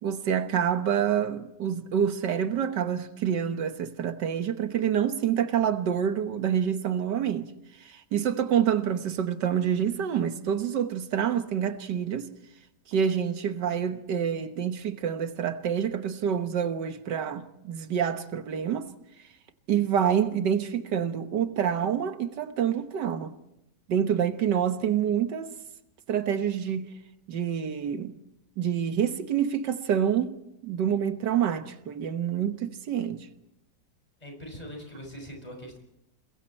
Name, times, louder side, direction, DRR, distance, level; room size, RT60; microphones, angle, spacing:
voice 1, 0.0-7.5 7.8-12.3 12.9-18.9 19.7-23.3 23.9-25.6 26.1-26.9 27.3-28.2 28.6-30.3 30.6-33.3, right 8 dB, 90° right, 1.8 m, -27 dB
voice 2, 34.2-35.8, equal, 20° left, 6.1 m, -42 dB
28.5 x 22.0 x 4.4 m
omnidirectional pair, 1.8 m